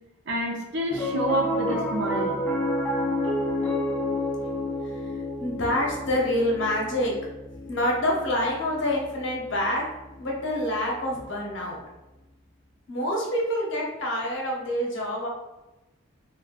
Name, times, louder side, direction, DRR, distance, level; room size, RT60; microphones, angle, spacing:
voice 1, 0.3-2.4, right 1 dB, 55° right, 0 dB, 0.6 m, -28 dB
Piano, 0.9-11.4, left 1 dB, 10° left, 0.5 m, -31 dB
voice 2, 4.8-7.1 7.7-9.9 10.2-11.8 12.9-15.3, left 1 dB, 55° left, -2 dB, 0.7 m, -27 dB
3.6 x 2.3 x 2.4 m, 1.0 s
head